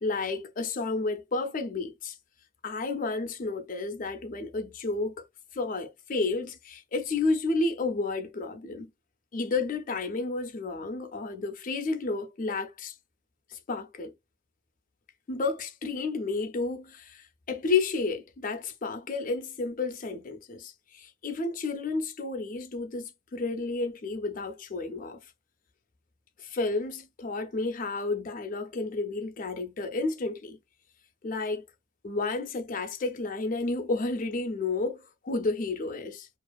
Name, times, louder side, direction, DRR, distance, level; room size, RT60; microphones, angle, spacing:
voice 1, 0.0-2.2 2.6-5.2 5.5-8.9 9.3-12.9 13.5-14.1 15.3-25.2 26.4-30.6 31.2-31.6 32.0-36.3, left 3 dB, 40° left, 0.5 m, -31 dB
2.4 x 2.4 x 2.2 m
head